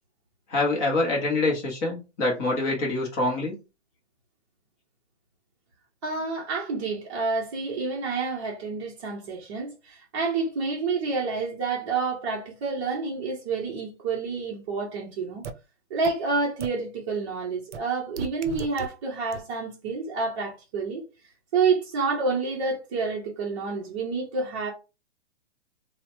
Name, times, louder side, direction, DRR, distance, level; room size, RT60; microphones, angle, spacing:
voice 1, 0.5-3.6, left 2 dB, 15° left, 0.5 m, -25 dB
voice 2, 6.0-15.4 15.9-21.0 21.5-24.7, right 4 dB, 30° right, 0.6 m, -28 dB
sound 1, 15.4-15.5 16.0-16.1 16.6-16.7 17.7-17.8 18.2-18.9 19.3-19.4, right 5 dB, 75° right, 0.6 m, -34 dB
3.1 x 2.0 x 2.9 m
hypercardioid pair, 150°, 35 cm